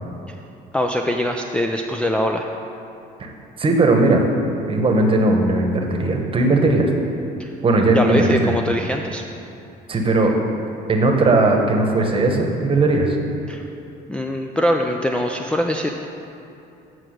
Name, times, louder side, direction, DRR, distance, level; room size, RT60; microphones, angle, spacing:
voice 1, 0.7-2.5 7.4-7.5 7.9-9.2 13.5-13.6 14.1-16.1, left 1 dB, 5° left, 2 dB, 0.3 m, -22 dB
voice 2, 3.6-4.2 4.7-6.9 7.6-8.6 9.9-10.4 10.9-13.2, right 2 dB, 30° right, 2 dB, 1.1 m, -18 dB
7.8 x 4.7 x 6.4 m, 2.8 s
cardioid pair, 110°, 17 cm